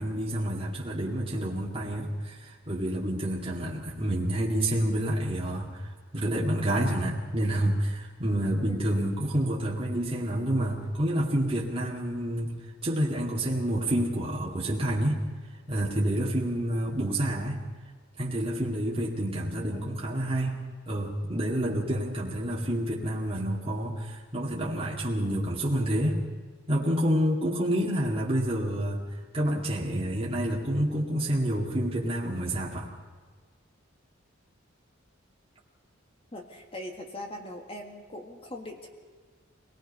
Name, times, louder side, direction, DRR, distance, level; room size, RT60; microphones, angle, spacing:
voice 1, 0.0-12.6 12.8-15.2 15.7-17.6 18.2-20.6 20.9-26.2 26.7-29.0 29.3-32.9, right 1 dB, 30° right, -5 dB, 2.3 m, -28 dB
voice 2, 8.7-9.0 19.7-20.1 25.2-25.6 36.3-38.9, left 1 dB, 30° left, 2 dB, 1.9 m, -42 dB
25.5 x 19.0 x 5.5 m, 1.5 s
head